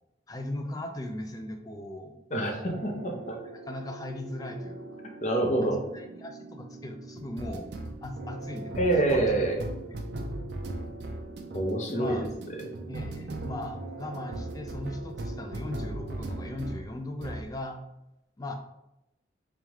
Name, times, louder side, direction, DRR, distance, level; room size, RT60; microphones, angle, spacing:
voice 1, 0.3-2.2 3.1-5.0 5.6-7.7 8.0-9.3 9.9-10.4 11.9-12.3 12.9-17.8 18.4-18.5, left 1 dB, 20° left, 5 dB, 0.4 m, -38 dB
voice 2, 2.3-3.4 5.2-5.8 8.7-9.6 11.5-12.3, right 2 dB, 40° left, 1 dB, 0.7 m, -26 dB
sound 1, 2.6-16.9 17.2-17.5, right 2 dB, 65° right, 0.5 m, -39 dB
3.5 x 3.5 x 3.0 m, 0.87 s
head